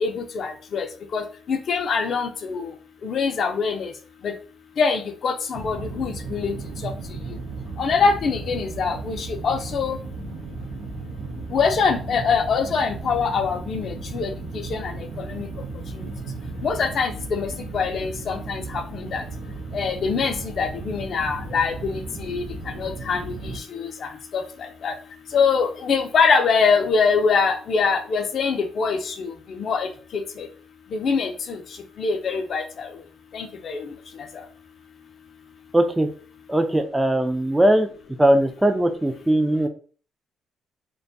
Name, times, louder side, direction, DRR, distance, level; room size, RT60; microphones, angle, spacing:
voice 1, 0.0-2.7 3.0-3.9 4.2-4.3 4.8-6.6 6.8-6.9 7.8-10.0 11.5-15.5 16.6-19.2 19.7-22.4 22.8-24.9 25.3-30.5 30.9-31.6 32.0-32.9 33.3-33.9, left 5 dB, 60° left, 6 dB, 0.4 m, -24 dB
sound 1, 5.5-23.6, right 3 dB, 90° right, 0.5 m, -35 dB
voice 2, 35.7-36.1 36.5-37.9 38.2-39.7, right 1 dB, 10° right, 6 dB, 0.3 m, -19 dB
2.4 x 2.2 x 2.6 m, 0.40 s
cardioid pair, 90°, 0 cm